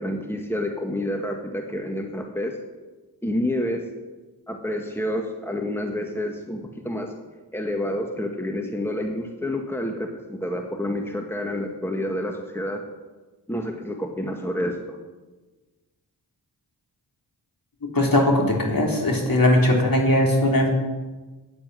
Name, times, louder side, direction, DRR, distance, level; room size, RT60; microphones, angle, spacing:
voice 1, 0.0-2.6 3.2-3.8 4.5-7.1 7.5-12.8 13.5-15.0, left 1 dB, 5° left, 3 dB, 1.7 m, -28 dB
voice 2, 17.9-20.7, left 1 dB, 50° left, 0 dB, 3.7 m, -19 dB
9.6 x 8.7 x 9.7 m, 1.2 s
cardioid pair, 40°, 45 cm